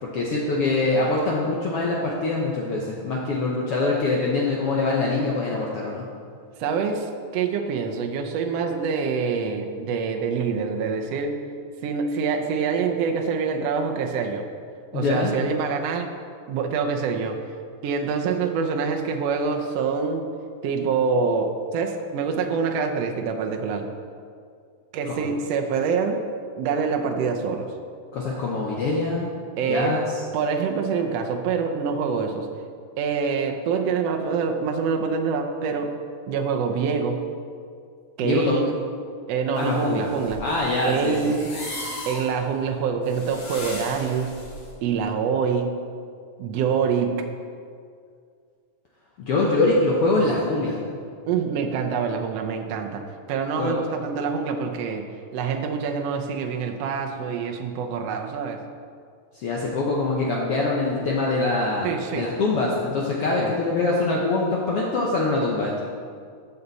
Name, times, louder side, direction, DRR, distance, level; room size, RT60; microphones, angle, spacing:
voice 1, 0.0-6.0 14.9-15.3 25.1-25.2 28.1-29.3 29.7-30.0 38.2-38.6 39.5-40.1 40.4-41.3 49.2-50.8 53.6-53.8 59.3-65.8, left 2 dB, 75° left, -3 dB, 1.3 m, -24 dB
voice 2, 6.6-11.4 11.8-14.5 14.9-16.1 16.5-17.4 17.8-20.3 20.6-23.9 24.9-26.2 26.6-27.7 29.6-30.0 30.3-32.5 33.0-35.9 36.3-37.2 38.2-38.8 39.3-40.4 40.8-41.5 42.0-44.4 44.8-45.7 46.4-47.2 51.3-53.0 53.3-58.6 61.8-62.3 63.4-63.5, right 5 dB, 90° right, 3 dB, 1.4 m, -25 dB
sound 1, 39.6-44.7, left 1 dB, 60° left, 4.0 m, -37 dB
14.0 x 6.6 x 4.1 m, 2.2 s
omnidirectional pair, 3.9 m